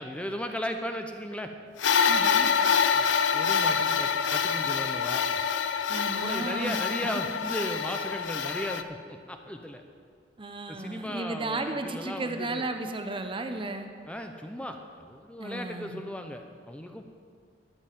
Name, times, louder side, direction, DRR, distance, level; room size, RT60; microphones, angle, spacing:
voice 1, 0.0-1.5 2.9-3.0 3.3-5.2 6.1-9.0 9.3-9.8 10.7-12.6 14.1-17.0, equal, 5° left, 5 dB, 0.6 m, -36 dB
sound 1, 1.8-8.8, left 6 dB, 80° left, 0.5 m, -26 dB
voice 2, 2.1-2.5 5.9-6.8 10.4-13.9 15.4-16.0, right 2 dB, 30° right, 6 dB, 0.8 m, -34 dB
13.0 x 5.4 x 9.3 m, 2.1 s
head